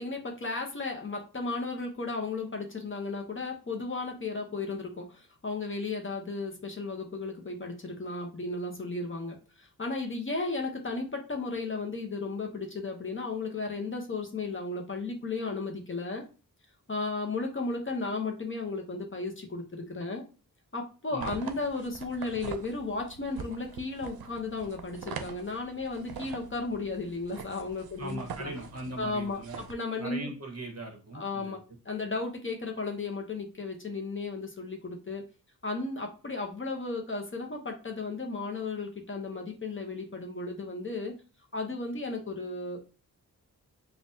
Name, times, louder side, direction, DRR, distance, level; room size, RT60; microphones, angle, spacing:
voice 1, 0.0-16.2 16.9-20.2 20.7-28.5 29.0-29.4 29.7-30.3 31.1-31.6 31.8-35.2 35.6-41.1 41.5-42.9, left 3 dB, 35° left, 2 dB, 0.8 m, -34 dB
sound 1, 21.2-29.7, right 6 dB, 75° right, 0.6 m, -44 dB
voice 2, 28.0-29.6 30.0-31.6, right 2 dB, 40° right, 2 dB, 1.1 m, -39 dB
5.4 x 2.4 x 2.7 m, 0.34 s
wide cardioid pair, 110°, 37 cm